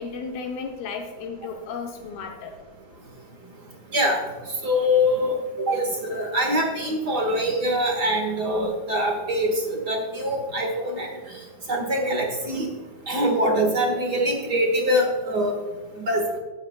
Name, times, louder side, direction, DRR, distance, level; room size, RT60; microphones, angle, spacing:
voice 1, 0.0-2.5, left 5 dB, 80° left, 2 dB, 2.6 m, -34 dB
voice 2, 4.6-11.4 11.7-12.7 13.1-15.6 16.0-16.2, equal, 55° right, 1 dB, 1.1 m, -24 dB
16.5 x 8.8 x 2.2 m, 1.5 s
omnidirectional pair, 4.2 m